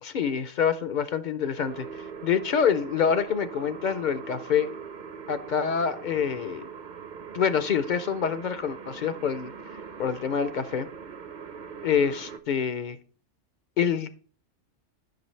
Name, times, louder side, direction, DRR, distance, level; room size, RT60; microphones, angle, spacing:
voice 1, 0.0-4.7 5.3-6.7 7.3-9.5 10.0-10.9 11.8-13.0 13.8-14.1, left 7 dB, 60° left, 0.5 m, -26 dB
sound 1, 1.6-12.4, right 6 dB, 50° right, 0.7 m, -41 dB
10.5 x 5.9 x 3.2 m
omnidirectional pair, 1.2 m